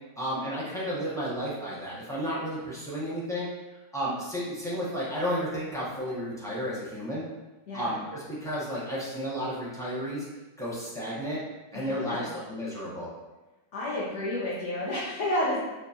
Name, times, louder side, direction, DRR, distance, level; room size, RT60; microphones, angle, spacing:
voice 1, 0.2-3.5 3.9-7.2 7.7-10.2 10.6-11.4 11.7-13.1, equal, 5° left, -9 dB, 0.4 m, -32 dB
voice 2, 11.7-12.3 13.7-15.6, left 1 dB, 55° left, -8 dB, 0.9 m, -30 dB
5.2 x 2.4 x 2.7 m, 1.2 s
omnidirectional pair, 1.9 m